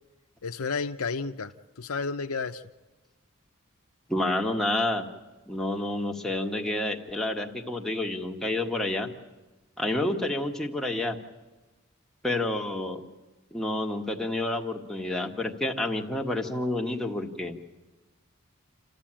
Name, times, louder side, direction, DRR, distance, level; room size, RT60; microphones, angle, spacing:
voice 1, 0.4-2.6, left 4 dB, 85° left, 6 dB, 0.7 m, -32 dB
voice 2, 4.1-5.1 5.5-9.1 9.8-11.2 12.2-13.0 13.5-17.5, left 1 dB, ahead, 1 dB, 1.5 m, -29 dB
28.5 x 13.5 x 8.9 m, 1.2 s
head